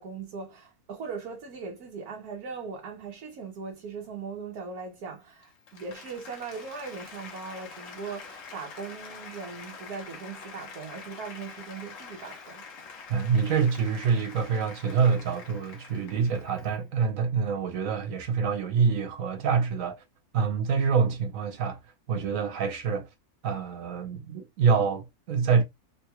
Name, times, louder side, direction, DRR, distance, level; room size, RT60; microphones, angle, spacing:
voice 1, 0.0-12.9, right 5 dB, 85° right, 1.3 m, -39 dB
Applause, 5.3-16.8, left 5 dB, 65° left, 1.2 m, -46 dB
voice 2, 13.1-20.0 20.3-21.8 22.1-23.1 23.4-25.6, right 6 dB, 70° right, 1.1 m, -26 dB
3.7 x 2.3 x 2.8 m
omnidirectional pair, 1.6 m